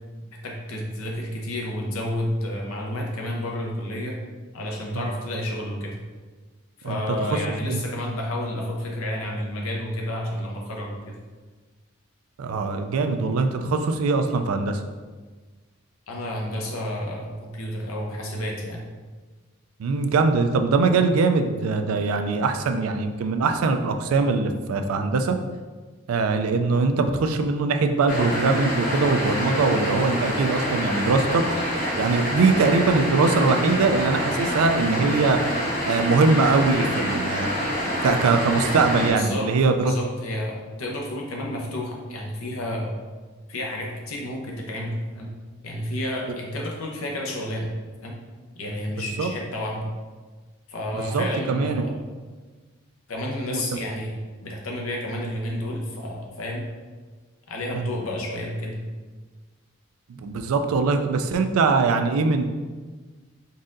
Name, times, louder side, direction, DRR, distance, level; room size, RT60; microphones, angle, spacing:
voice 1, 0.4-4.2 4.5-6.0 6.8-11.1 16.1-18.8 39.1-39.5 39.8-42.9 43.5-45.3 45.6-47.7 48.0-48.1 48.6-49.9 50.7-51.9 53.1-54.1 54.4-56.7 57.5-58.8, left 1 dB, 85° left, -1 dB, 0.8 m, -30 dB
voice 2, 12.4-14.8 19.8-25.4 26.1-31.4 32.0-35.4 35.9-37.5 38.0-39.9 49.2-49.3 50.9-51.9 53.5-53.6 57.7-57.9 60.1-62.4, right 4 dB, 90° right, 6 dB, 0.4 m, -22 dB
sound 1, 28.1-39.1, equal, 40° left, 0.9 m, -27 dB
4.0 x 3.6 x 2.5 m, 1.4 s
head